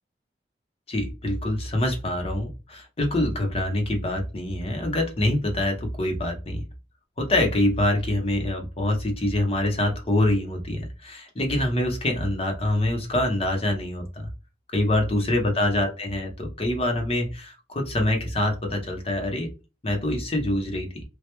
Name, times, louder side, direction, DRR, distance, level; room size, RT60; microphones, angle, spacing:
voice 1, 0.9-6.6 7.2-14.3 14.7-19.5 19.8-21.0, left 1 dB, 35° left, 3 dB, 0.9 m, -25 dB
3.3 x 2.3 x 3.0 m, 0.29 s
head